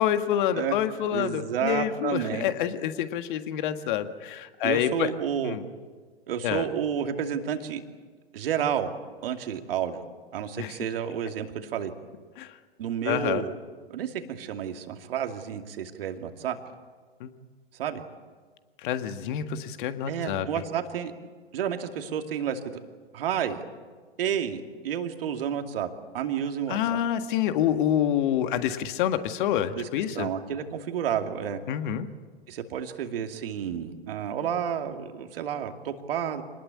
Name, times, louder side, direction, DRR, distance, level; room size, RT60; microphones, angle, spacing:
voice 1, 0.0-5.1 5.4-5.6 6.4-6.7 10.6-10.8 12.4-12.5 13.1-13.4 17.2-17.3 18.8-20.5 26.7-30.3 31.7-32.1, left 10 dB, 50° left, 9 dB, 1.8 m, -27 dB
voice 2, 1.1-2.5 4.6-5.6 6.3-7.8 8.3-8.9 9.2-10.1 10.3-11.9 12.8-13.6 13.9-16.6 17.7-18.0 20.1-21.1 21.5-22.8 23.1-23.6 24.2-25.9 26.1-27.0 29.7-29.9 30.1-31.6 32.5-36.4, right 8 dB, 60° right, 5 dB, 2.5 m, -30 dB
26.0 x 20.0 x 8.7 m, 1.5 s
figure-of-eight pair, 105°, 32 cm